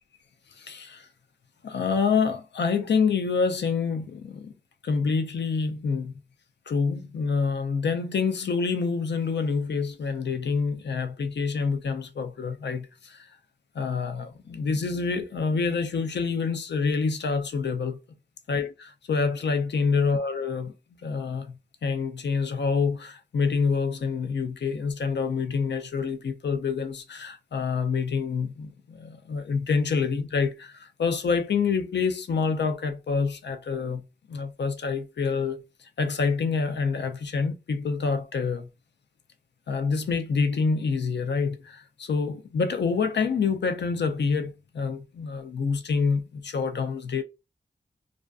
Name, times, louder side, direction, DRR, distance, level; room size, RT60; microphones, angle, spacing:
voice 1, 0.6-1.1 1.6-4.5 4.8-6.1 6.7-13.3 13.7-18.0 18.5-20.7 21.0-38.7 39.7-47.2, left 5 dB, 80° left, 0.4 m, -27 dB
2.4 x 2.4 x 2.3 m
wide cardioid pair, 45°, 18 cm